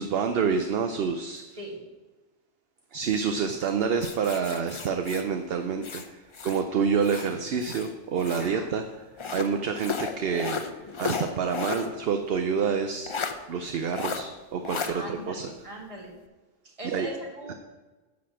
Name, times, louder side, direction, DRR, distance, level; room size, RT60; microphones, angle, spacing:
voice 1, 0.0-1.6 2.9-8.8 9.3-10.6 11.0-13.1 13.5-15.5 16.9-17.1 17.5-17.6, right 6 dB, 60° right, 6 dB, 0.7 m, -28 dB
sound 1, 4.0-6.6 7.0-8.5 9.2-11.9 12.2-12.3 13.1-13.3 13.9-14.2 14.6-14.9, left 5 dB, 50° left, 0.3 m, -34 dB
voice 2, 14.9-16.1 16.8-17.5, right 1 dB, 25° right, -1 dB, 1.7 m, -39 dB
9.9 x 4.2 x 7.5 m, 1.2 s
omnidirectional pair, 1.3 m